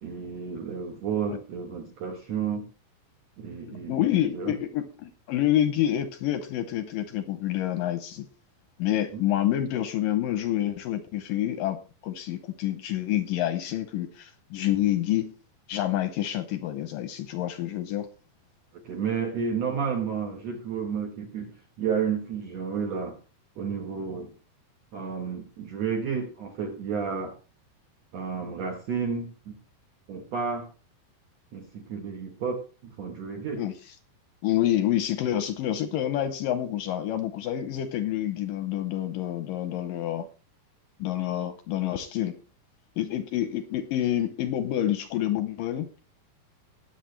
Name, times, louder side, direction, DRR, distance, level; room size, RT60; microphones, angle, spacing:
voice 1, 0.0-2.7 3.4-4.1 4.3-4.6 9.1-9.2 18.8-23.2 23.6-24.3 24.9-27.4 28.1-29.6 30.1-30.7 31.5-33.7, right 6 dB, 60° right, 2 dB, 1.8 m, -31 dB
voice 2, 3.7-8.3 8.8-15.3 15.7-18.1 33.6-33.7 34.4-40.3 41.0-42.4 43.0-45.9, left 12 dB, 75° left, 11 dB, 2.0 m, -28 dB
20.5 x 7.4 x 3.2 m, 0.34 s
omnidirectional pair, 4.7 m